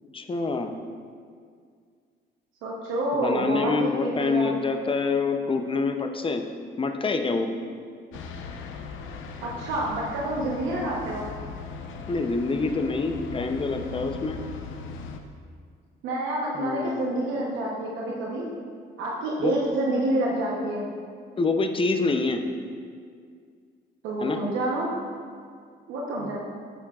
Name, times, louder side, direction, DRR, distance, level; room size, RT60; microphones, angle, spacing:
voice 1, 0.1-0.7 3.1-6.4 6.8-7.5 12.1-14.4 16.6-16.9 19.4-19.5 21.4-22.4 24.2-24.4 26.2-26.4, left 3 dB, 25° left, 6 dB, 0.5 m, -26 dB
voice 2, 2.6-4.5 9.4-11.3 16.0-18.5 19.0-20.9 24.0-25.0 25.9-26.4, right 1 dB, 90° right, -3 dB, 0.9 m, -28 dB
sound 1, 8.1-15.2, left 5 dB, 80° left, 0.6 m, -38 dB
8.7 x 7.1 x 2.4 m, 2.1 s
cardioid pair, 90°, 20 cm